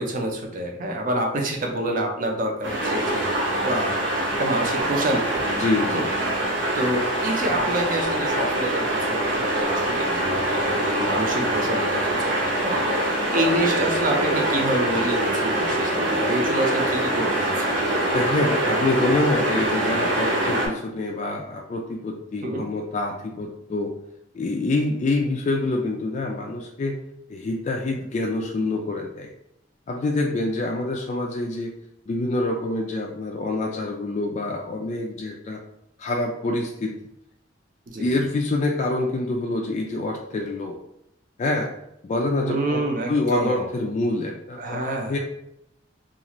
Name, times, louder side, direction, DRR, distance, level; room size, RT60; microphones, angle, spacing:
voice 1, 0.0-3.3 3.6-4.0 4.4-5.4 5.9-6.1 6.7-12.3 12.6-12.8 13.3-18.0 22.4-22.6 37.9-38.1 42.4-43.6 44.6-45.2, right 1 dB, 50° right, 2 dB, 0.6 m, -27 dB
sound 1, 2.6-20.7, right 1 dB, 75° right, 0.8 m, -24 dB
voice 2, 5.5-6.1 18.1-23.9 24.3-27.0 27.3-29.3 29.9-31.7 32.1-35.6 36.0-36.9 38.0-40.8 41.4-41.7 42.0-44.8 45.1-45.2, left 2 dB, 40° left, 0 dB, 0.3 m, -26 dB
2.5 x 2.4 x 3.0 m, 0.82 s
head